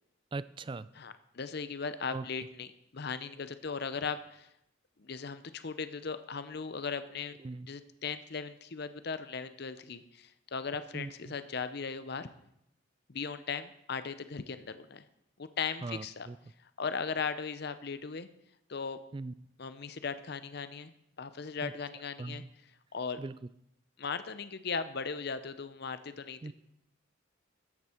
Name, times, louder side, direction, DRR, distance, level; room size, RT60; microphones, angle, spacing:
voice 1, 0.3-0.9 2.1-2.2 7.4-7.7 10.9-11.3 15.8-16.4 19.1-19.3 21.6-21.7 22.2-22.5 23.2-23.3 26.4-26.5, right 3 dB, 25° right, 17 dB, 0.3 m, -39 dB
voice 2, 0.9-2.7 2.9-4.5 5.0-7.4 7.7-12.3 13.1-15.0 15.4-16.3 16.8-18.3 18.7-19.0 19.6-20.9 21.2-23.2 24.0-26.5, left 5 dB, 55° left, 12 dB, 0.7 m, -38 dB
13.5 x 9.8 x 4.4 m, 0.77 s
head